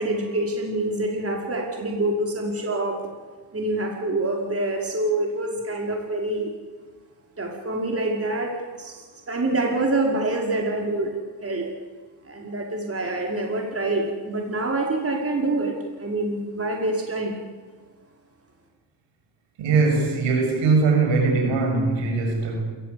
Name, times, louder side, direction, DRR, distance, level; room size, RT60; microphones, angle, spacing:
voice 1, 0.0-3.0 3.5-6.5 7.4-11.1 11.4-11.6 12.2-17.4, right 2 dB, 30° right, 0 dB, 5.3 m, -26 dB
voice 2, 19.6-22.6, right 4 dB, 85° right, 2 dB, 7.9 m, -21 dB
29.5 x 15.5 x 8.7 m, 1.4 s
supercardioid pair, 70°, 44 cm